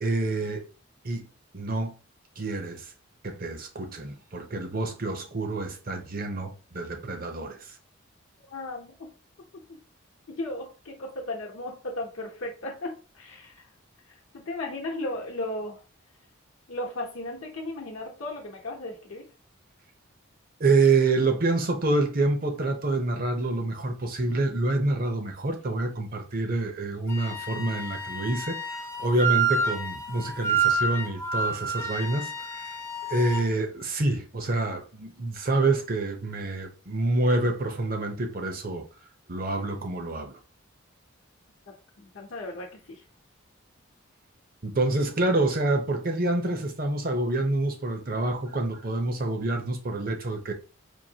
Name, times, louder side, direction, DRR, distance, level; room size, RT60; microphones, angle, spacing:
voice 1, 0.0-0.6 1.0-1.2 1.5-1.9 2.4-2.9 3.2-7.6 20.6-32.7 33.1-38.8 39.3-40.4 44.6-50.5, right 2 dB, 45° right, 0.7 m, -27 dB
voice 2, 8.5-9.1 9.5-9.8 10.3-13.7 14.1-15.8 16.7-19.3 41.7-43.0, left 2 dB, 70° left, 0.8 m, -36 dB
Wind instrument woodwind instrument, 27.1-33.5, right 4 dB, 15° left, 0.5 m, -29 dB
4.5 x 2.6 x 2.8 m
head